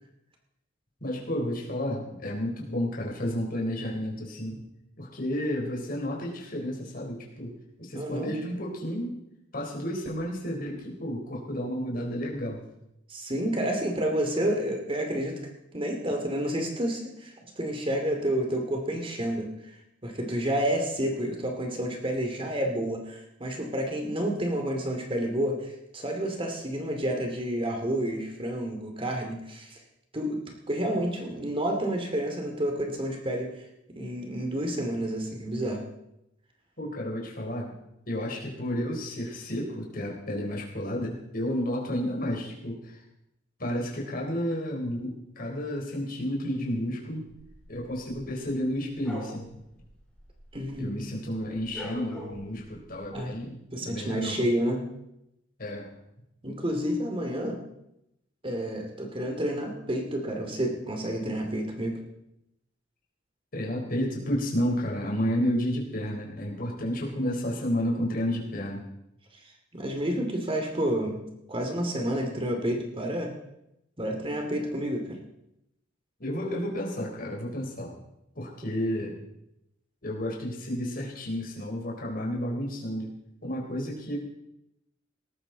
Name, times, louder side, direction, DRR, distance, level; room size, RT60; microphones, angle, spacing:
voice 1, 1.0-4.6 5.0-7.5 7.8-9.1 9.5-12.6 36.8-37.8 38.1-43.0 43.6-47.3 47.7-49.5 50.8-54.4 55.6-55.9 63.5-68.8 76.2-78.0 78.4-79.2 80.0-83.1 83.4-84.2, equal, 50° left, -1 dB, 4.1 m, -31 dB
voice 2, 7.9-8.3 13.1-15.3 15.7-19.5 20.0-29.8 30.1-30.4 30.7-33.6 33.9-35.8 50.5-51.1 53.1-53.3 53.7-54.8 56.4-57.6 58.4-62.0 69.7-71.2 71.5-73.3 74.0-75.2, right 1 dB, 30° right, 3 dB, 2.5 m, -30 dB
sound 1, 47.3-51.0 51.2-53.3, equal, 5° left, 4.3 m, -45 dB
19.0 x 14.0 x 4.0 m, 0.83 s
head